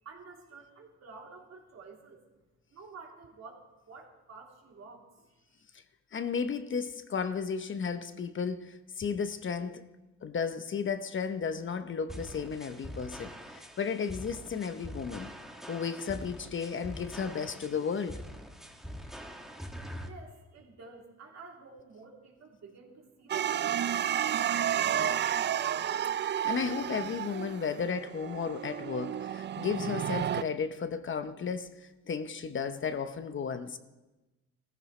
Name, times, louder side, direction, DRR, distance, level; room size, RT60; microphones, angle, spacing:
voice 1, 0.0-2.2 2.7-5.1 5.5-5.6 20.0-25.3, right 4 dB, 60° right, 3.2 m, -50 dB
voice 2, 6.1-9.8 10.2-15.3 15.7-18.2 26.3-33.8, left 6 dB, 40° left, 0.9 m, -34 dB
sound 1, 12.1-20.1, equal, ahead, 1.4 m, -44 dB
sound 2, 23.3-30.4, right 10 dB, 40° right, 0.4 m, -31 dB
17.0 x 14.5 x 3.2 m
cardioid pair, 90°, 30 cm